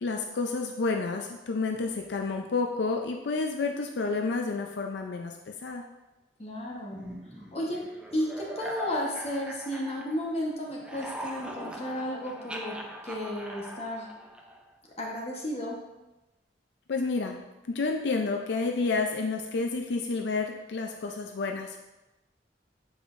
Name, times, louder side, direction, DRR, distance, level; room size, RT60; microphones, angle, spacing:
voice 1, 0.0-5.8 16.9-17.4 17.7-21.8, left 3 dB, 75° left, 3 dB, 0.5 m, -30 dB
voice 2, 6.4-7.0 7.5-12.8 13.0-14.1 15.0-15.8, equal, 35° left, -2 dB, 1.1 m, -33 dB
sound 1, 6.9-10.4 10.7-14.7, equal, 5° right, 0.4 m, -41 dB
8.1 x 4.9 x 2.5 m, 1.0 s
head